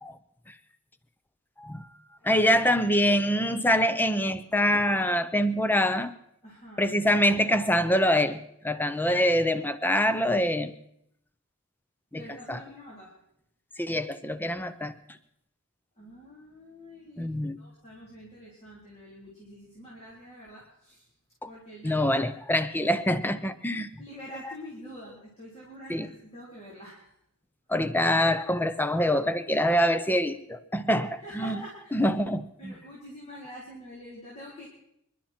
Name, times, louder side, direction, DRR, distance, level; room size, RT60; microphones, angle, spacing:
voice 1, 2.2-6.1 6.8-10.7 12.1-12.6 13.8-14.9 17.2-17.6 21.4-21.5 21.8-23.9 25.9-26.1 27.7-31.6 31.9-32.7, equal, 10° left, 12 dB, 0.7 m, -25 dB
voice 2, 6.4-6.9 12.2-13.1 16.0-21.1 21.5-22.3 22.9-23.1 24.0-27.1 31.2-32.1 32.6-34.7, equal, 30° left, -5 dB, 3.7 m, -46 dB
26.5 x 11.5 x 4.5 m, 0.76 s
head